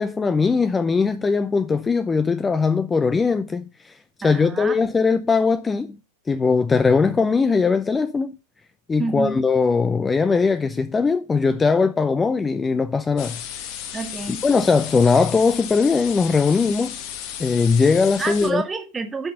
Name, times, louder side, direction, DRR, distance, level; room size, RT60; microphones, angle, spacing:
voice 1, 0.0-6.0 6.3-8.3 8.9-13.7 14.3-17.0 17.4-18.6, left 4 dB, 15° left, 0.5 m, -20 dB
voice 2, 4.2-4.8 9.0-9.4 13.9-14.4 18.2-19.3, right 4 dB, 15° right, 1.7 m, -28 dB
sound 1, 13.2-18.5, left 9 dB, 45° left, 1.5 m, -34 dB
10.5 x 5.9 x 5.3 m
figure-of-eight pair, 90°, 0 cm